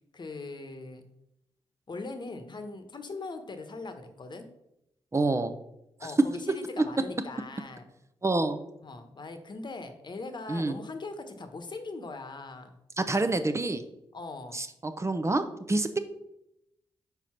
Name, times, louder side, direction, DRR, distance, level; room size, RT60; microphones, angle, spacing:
voice 1, 0.1-1.1 1.9-4.5 6.0-7.9 8.8-12.8 14.1-14.6, left 3 dB, 45° left, 7 dB, 1.1 m, -40 dB
voice 2, 5.1-5.5 8.2-8.6 10.5-10.8 13.0-13.8 14.5-16.0, right 2 dB, 25° right, 8 dB, 0.8 m, -27 dB
5.2 x 4.8 x 5.8 m, 0.83 s
supercardioid pair, 50°, 11 cm